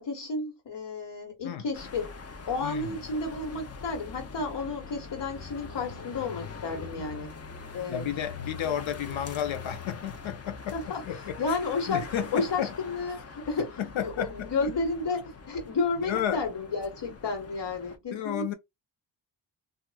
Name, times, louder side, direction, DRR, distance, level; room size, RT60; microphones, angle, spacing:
voice 1, 0.0-2.1 2.5-7.3 7.7-8.1 10.7-11.0 11.4-12.0 12.3-18.6, left 3 dB, 65° left, 1.4 m, -32 dB
sound 1, 1.7-18.0, left 5 dB, 35° left, 0.6 m, -43 dB
voice 2, 2.6-3.0 6.9-7.1 7.9-10.8 11.0-11.6 11.9-12.7 13.8-14.7 16.0-16.4 18.1-18.5, left 9 dB, 90° left, 0.7 m, -32 dB
3.0 x 2.4 x 2.3 m
cardioid pair, 60°, 45 cm